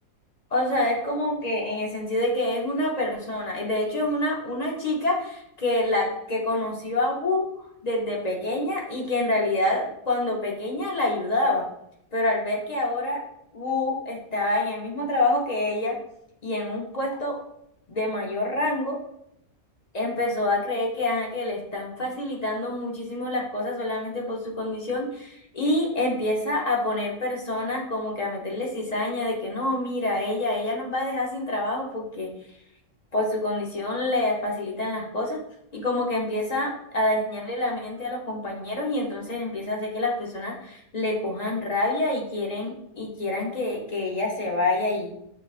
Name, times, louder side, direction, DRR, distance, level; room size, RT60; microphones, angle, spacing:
voice 1, 0.5-7.5 7.8-11.6 12.1-13.2 13.5-16.0 16.4-17.3 17.9-19.0 19.9-32.3 33.1-35.4 35.7-45.1, left 2 dB, 40° left, -1 dB, 0.6 m, -27 dB
6.8 x 2.3 x 2.4 m, 0.75 s
omnidirectional pair, 1.5 m